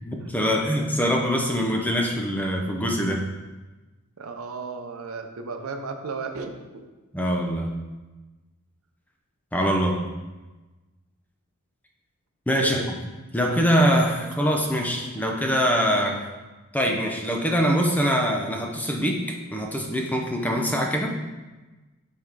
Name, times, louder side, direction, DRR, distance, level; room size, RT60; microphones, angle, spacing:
voice 1, 0.0-3.2 7.1-7.7 9.5-10.0 12.5-13.0 13.3-16.2 16.7-21.1, equal, 5° left, 1 dB, 0.6 m, -23 dB
voice 2, 4.2-6.9 12.6-12.8, right 4 dB, 75° right, 5 dB, 0.6 m, -34 dB
6.8 x 3.6 x 4.6 m, 1.2 s
head